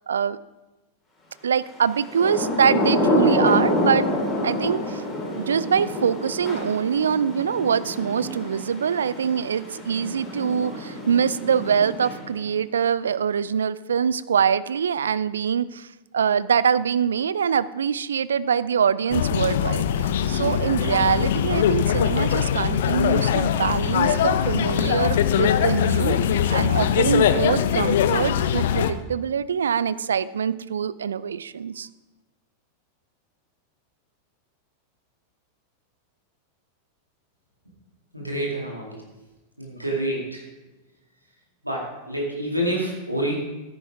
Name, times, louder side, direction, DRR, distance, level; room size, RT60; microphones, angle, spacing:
voice 1, 0.1-0.4 1.4-4.1 4.4-5.0 5.4-15.9 16.1-31.9, right 7 dB, 70° right, 17 dB, 0.4 m, -24 dB
Thunder / Rain, 1.9-12.5, equal, 15° left, 4.0 m, -27 dB
sound 1, 19.1-28.9, left 9 dB, 60° left, 0.6 m, -22 dB
voice 2, 38.1-39.0 39.6-40.4 41.6-43.3, right 1 dB, 90° right, -2 dB, 2.2 m, -27 dB
13.5 x 10.0 x 3.5 m, 1.1 s
figure-of-eight pair, 90°, 0 cm